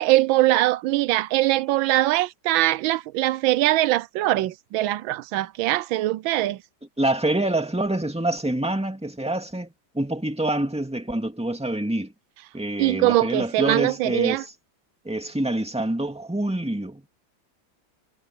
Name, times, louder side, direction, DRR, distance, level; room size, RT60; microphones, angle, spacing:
voice 1, 0.0-6.6 12.8-14.4, right 16 dB, 85° right, 1.4 m, -22 dB
voice 2, 7.0-12.1 12.5-14.5 15.0-17.1, right 1 dB, 5° right, 2.0 m, -26 dB
omnidirectional pair, 2.1 m